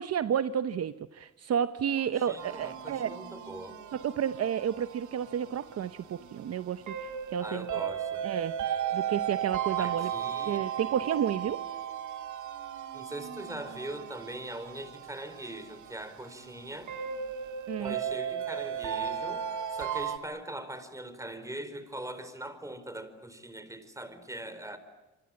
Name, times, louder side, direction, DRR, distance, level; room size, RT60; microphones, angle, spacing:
voice 1, 0.0-3.1 3.9-7.7 8.2-10.1 10.5-11.6 17.7-18.0, right 9 dB, 55° right, 12 dB, 0.9 m, -31 dB
voice 2, 2.1-3.8 7.4-8.3 9.8-10.6 12.9-16.9 17.8-19.4 19.7-24.8, right 1 dB, 10° right, 11 dB, 4.4 m, -41 dB
sound 1, 2.4-20.2, right 9 dB, 75° right, 2.3 m, -36 dB
27.5 x 24.5 x 8.7 m, 1.1 s
cardioid pair, 90°, 30 cm